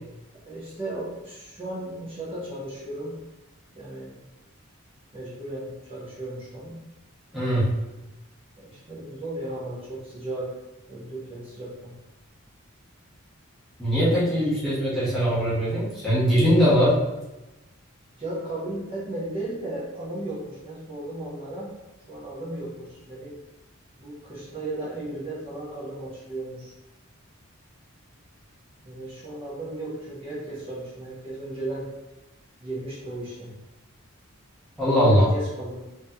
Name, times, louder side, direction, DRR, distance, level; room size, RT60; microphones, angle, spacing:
voice 1, 0.5-3.2 3.7-4.1 5.1-6.8 8.6-10.5 10.9-11.9 14.2-14.7 18.2-21.7 22.1-23.4 24.0-26.7 28.8-31.9 32.6-33.5 34.9-35.9, right 1 dB, 25° right, -8 dB, 1.0 m, -35 dB
voice 2, 7.3-7.7 13.8-17.0 34.8-35.3, equal, ahead, -11 dB, 1.1 m, -21 dB
3.1 x 2.8 x 3.7 m, 1.0 s
head